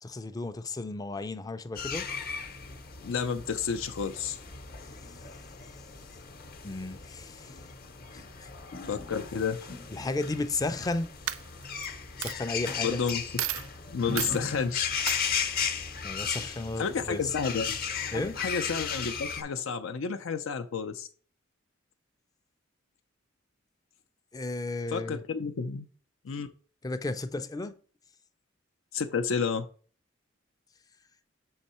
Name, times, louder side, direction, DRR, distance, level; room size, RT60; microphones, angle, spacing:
voice 1, 0.0-2.1 6.6-7.5 8.1-8.5 9.9-11.1 12.2-13.0 16.0-17.3 18.1-18.4 24.3-25.2 26.8-27.7, left 2 dB, 20° left, 0.4 m, -33 dB
sound 1, 1.8-19.4, left 6 dB, 50° left, 0.8 m, -36 dB
voice 2, 3.0-4.4 8.9-9.6 12.8-13.2 13.9-14.9 16.8-17.8 18.1-21.1 24.9-25.9 26.2-26.5 28.9-29.7, left 6 dB, 85° left, 0.5 m, -31 dB
Coin (dropping), 10.6-10.9 11.3-11.9 12.2-12.3 13.1-13.2 13.4-13.7 14.2-14.4 15.1-15.2, right 12 dB, 90° right, 0.4 m, -32 dB
6.4 x 3.6 x 4.2 m
head